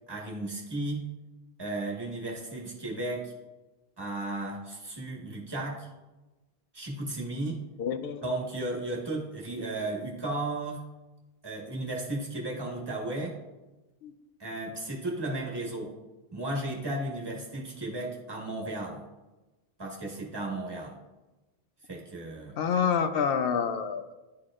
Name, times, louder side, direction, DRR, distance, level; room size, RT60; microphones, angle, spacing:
voice 1, 0.1-1.1 1.6-3.3 4.0-5.9 6.7-7.6 8.2-10.8 11.4-13.4 14.4-15.9 16.3-19.0 19.8-21.0 21.9-22.5, right 2 dB, 25° right, -2 dB, 1.4 m, -34 dB
voice 2, 7.8-8.2 14.0-14.1 22.6-24.1, left 7 dB, 70° left, 10 dB, 0.8 m, -27 dB
11.0 x 4.5 x 2.4 m, 1.1 s
omnidirectional pair, 1.0 m